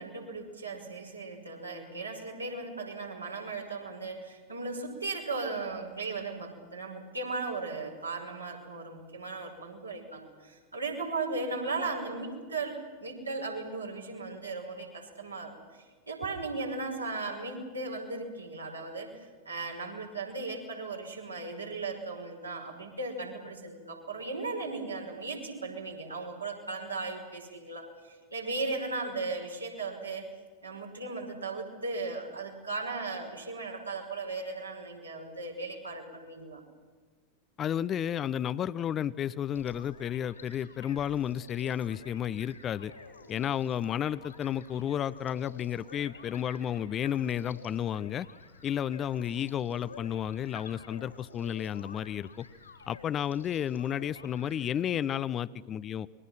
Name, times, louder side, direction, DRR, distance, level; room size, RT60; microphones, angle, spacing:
voice 1, 0.0-30.2 30.6-36.6, right 3 dB, 80° right, -1 dB, 5.8 m, -37 dB
voice 2, 37.6-42.9 43.3-48.3 48.6-52.5 52.9-56.1, left 9 dB, 30° left, 17 dB, 0.7 m, -32 dB
sound 1, 39.5-54.6, left 4 dB, 75° left, 4.3 m, -51 dB
29.0 x 22.5 x 5.8 m, 1.5 s
figure-of-eight pair, 90°, 0 cm